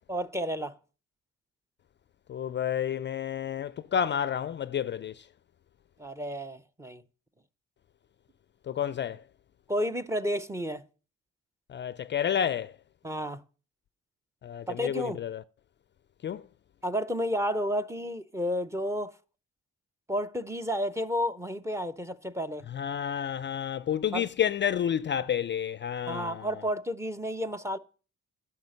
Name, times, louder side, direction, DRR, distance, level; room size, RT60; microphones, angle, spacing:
voice 1, 0.1-0.7 6.0-7.0 9.7-10.8 13.0-13.4 14.7-15.2 16.8-19.1 20.1-22.7 24.1-24.3 26.1-27.8, equal, 10° right, 0.6 m, -31 dB
voice 2, 2.3-5.3 8.7-9.2 11.7-12.8 14.4-15.4 16.2-16.5 22.7-26.5, left 9 dB, 40° left, 0.4 m, -30 dB
10.5 x 5.8 x 6.4 m
cardioid pair, 90°, 30 cm